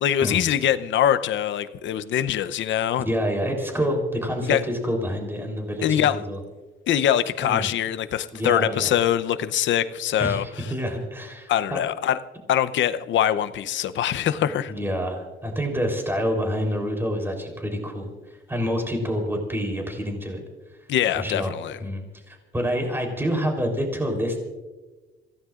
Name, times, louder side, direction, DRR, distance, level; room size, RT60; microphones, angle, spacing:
voice 1, 0.0-3.1 4.5-4.6 5.8-6.2 6.9-10.7 11.5-12.2 12.5-14.7 20.9-21.8, left 10 dB, 70° left, 12 dB, 0.8 m, -23 dB
voice 2, 3.0-6.4 7.4-7.7 8.3-8.9 10.2-11.8 14.7-20.4 21.1-21.5 21.8-24.4, equal, 10° right, 2 dB, 3.7 m, -27 dB
27.0 x 16.0 x 2.5 m, 1.2 s
cardioid pair, 90°, 20 cm